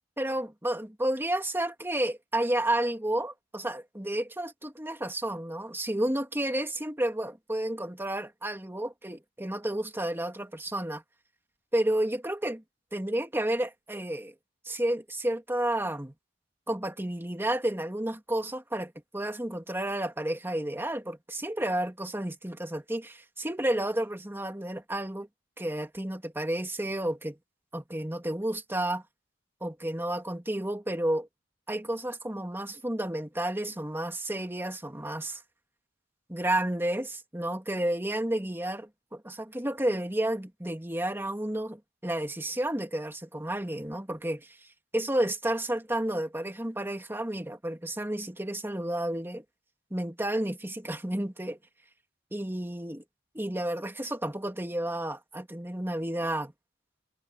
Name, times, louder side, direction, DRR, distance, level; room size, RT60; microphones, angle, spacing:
voice 1, 0.2-11.0 11.7-12.6 12.9-14.3 14.6-16.1 16.7-25.3 25.6-27.4 27.7-29.0 29.6-31.3 31.7-35.4 36.3-44.6 44.9-49.4 49.9-51.6 52.3-53.0 53.3-56.5, right 1 dB, 10° right, 2.4 m, -31 dB
head